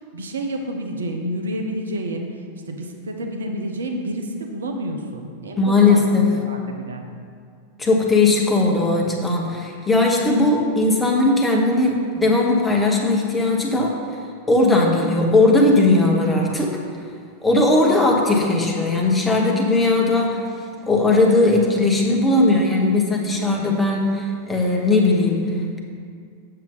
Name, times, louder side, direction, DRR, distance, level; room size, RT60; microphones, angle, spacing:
voice 1, 0.1-2.3 2.7-7.1, right 1 dB, 70° right, 3 dB, 0.8 m, -29 dB
voice 2, 5.6-6.3 7.8-14.0 14.5-16.8 17.4-20.4 20.9-25.5, left 2 dB, 10° left, 0 dB, 1.2 m, -18 dB
7.7 x 7.1 x 3.9 m, 2.2 s
figure-of-eight pair, 90°, 0 cm